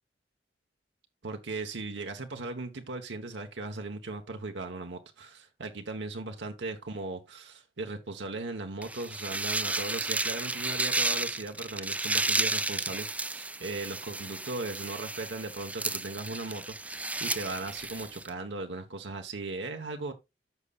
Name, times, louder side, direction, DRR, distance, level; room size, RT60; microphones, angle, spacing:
voice 1, 1.2-20.1, right 3 dB, 80° right, 1.1 m, -38 dB
sound 1, 8.8-18.3, right 2 dB, 10° right, 0.4 m, -32 dB
14.0 x 5.4 x 2.3 m
head